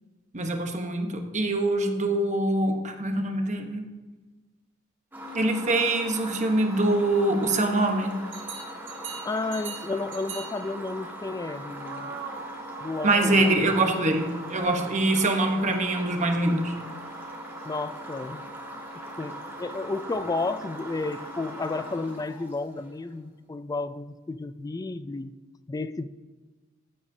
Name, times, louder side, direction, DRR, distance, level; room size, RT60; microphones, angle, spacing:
voice 1, 0.3-3.9 5.3-8.2 13.0-16.7, right 2 dB, 35° right, 4 dB, 1.0 m, -24 dB
sound 1, 5.1-23.1, right 1 dB, 10° right, 1.6 m, -40 dB
sound 2, 8.3-10.7 11.8-13.9 14.3-14.6, right 5 dB, 65° right, 1.2 m, -41 dB
voice 2, 9.2-12.2 12.8-13.5 17.6-18.5 19.2-25.4 25.7-26.1, left 3 dB, 20° left, 13 dB, 0.3 m, -32 dB
15.0 x 8.1 x 2.7 m, 1.2 s
head